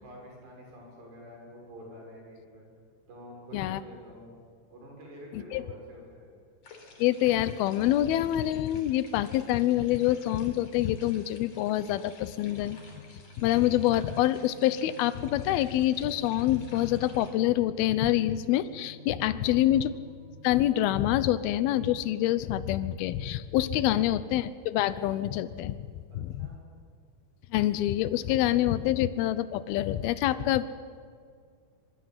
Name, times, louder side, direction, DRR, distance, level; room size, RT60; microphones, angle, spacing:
voice 1, 0.0-2.7 3.1-4.4 4.7-6.3 19.2-19.7 26.1-26.7, equal, 70° right, -1 dB, 9.0 m, -48 dB
sound 1, 6.6-17.3, left 3 dB, 40° left, 4.6 m, -53 dB
voice 2, 7.0-12.8 13.4-19.9 20.4-25.9 26.1-26.5 27.5-30.7, left 13 dB, 75° left, 14 dB, 2.5 m, -26 dB
sound 2, 12.5-23.1, left 2 dB, 85° right, 5.2 m, -50 dB
25.5 x 22.5 x 9.7 m, 2.1 s
omnidirectional pair, 5.1 m